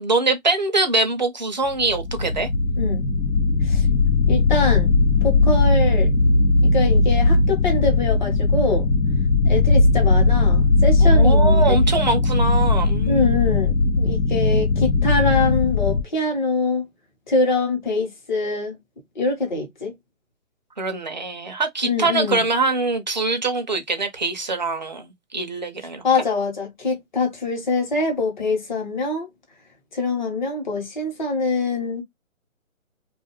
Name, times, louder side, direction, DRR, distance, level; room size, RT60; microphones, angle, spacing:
voice 1, 0.0-2.5 11.0-13.4 20.8-26.0, right 3 dB, 35° right, 0.5 m, -23 dB
sound 1, 1.7-16.0, left 3 dB, 90° left, 0.8 m, -18 dB
voice 2, 4.3-4.9 5.2-6.1 6.6-8.9 9.5-11.7 13.0-16.9 17.3-18.8 19.2-19.9 21.8-22.4 26.0-29.3 29.9-32.0, left 3 dB, 35° left, 1.0 m, -24 dB
2.5 x 2.3 x 2.9 m
hypercardioid pair, 160°, 41 cm